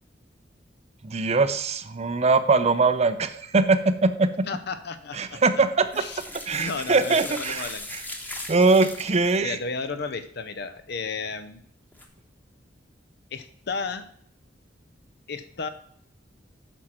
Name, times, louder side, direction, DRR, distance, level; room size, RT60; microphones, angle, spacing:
voice 1, 1.0-4.3 5.1-5.9 6.5-8.0 8.5-9.6, right 3 dB, 35° right, 11 dB, 0.6 m, -22 dB
voice 2, 4.5-5.4 6.0-6.2 6.5-7.9 9.4-11.6 13.3-14.1 15.3-15.7, left 4 dB, 60° left, 11 dB, 0.7 m, -33 dB
sound 1, 5.9-9.4 11.9-12.0, left 1 dB, 10° left, 1.1 m, -38 dB
8.8 x 6.2 x 4.4 m, 0.65 s
head